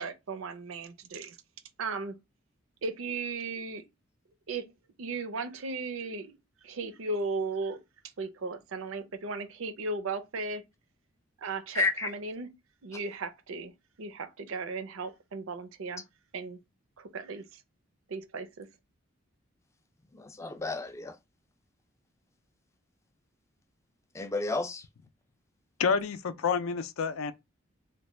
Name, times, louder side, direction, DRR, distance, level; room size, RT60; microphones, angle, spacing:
voice 1, 0.0-1.4 1.8-2.1 2.8-3.9 4.5-4.7 5.0-6.4 6.6-7.8 8.2-10.6 11.4-12.5 12.8-13.7 14.0-16.0 16.3-16.6 17.0-17.6 18.1-18.7, right 3 dB, 80° right, 0.5 m, -36 dB
voice 2, 11.7-12.1 20.1-21.2 24.1-24.8, left 3 dB, 15° left, 0.3 m, -31 dB
voice 3, 25.8-27.3, left 5 dB, 90° left, 0.4 m, -28 dB
3.3 x 2.2 x 3.1 m
head